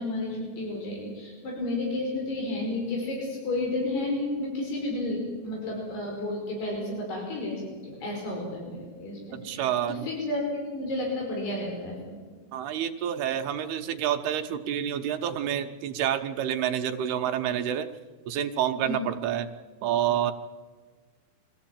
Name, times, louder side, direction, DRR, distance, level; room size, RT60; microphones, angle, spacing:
voice 1, 0.0-12.2 18.8-19.1, left 2 dB, 85° left, -1 dB, 6.9 m, -32 dB
voice 2, 9.3-10.1 12.5-17.9 18.3-19.5 19.8-20.3, right 10 dB, 85° right, 7 dB, 2.9 m, -28 dB
24.5 x 15.5 x 8.8 m, 1.4 s
omnidirectional pair, 4.5 m